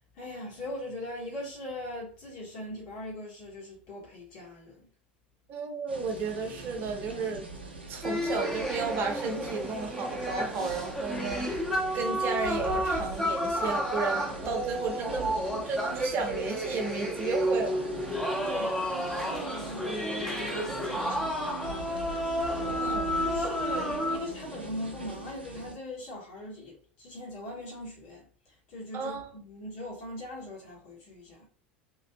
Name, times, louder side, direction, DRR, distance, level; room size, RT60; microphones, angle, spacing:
voice 1, 0.1-4.9 18.4-21.9 23.2-28.3 28.7-31.5, left 1 dB, 50° left, 1.5 m, -40 dB
voice 2, 5.5-7.4 7.9-11.6 11.9-17.8 22.6-23.1 28.9-29.3, right 4 dB, 40° right, 0.8 m, -33 dB
sound 1, 5.9-25.7, right 3 dB, 85° right, 0.6 m, -42 dB
sound 2, 8.0-24.2, equal, 5° left, 0.8 m, -31 dB
3.2 x 2.5 x 2.2 m
figure-of-eight pair, 75°, 6 cm